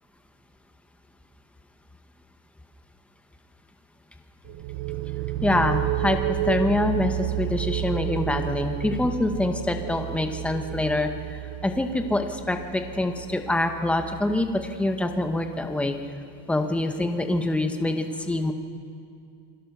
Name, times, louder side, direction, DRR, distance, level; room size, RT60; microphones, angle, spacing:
sound 1, 4.4-16.0, right 14 dB, 45° right, 0.8 m, -31 dB
voice 1, 5.4-16.0 16.5-18.5, left 2 dB, 5° left, 5 dB, 0.8 m, -25 dB
28.0 x 21.5 x 6.6 m, 2.4 s
cardioid pair, 175°, 45 cm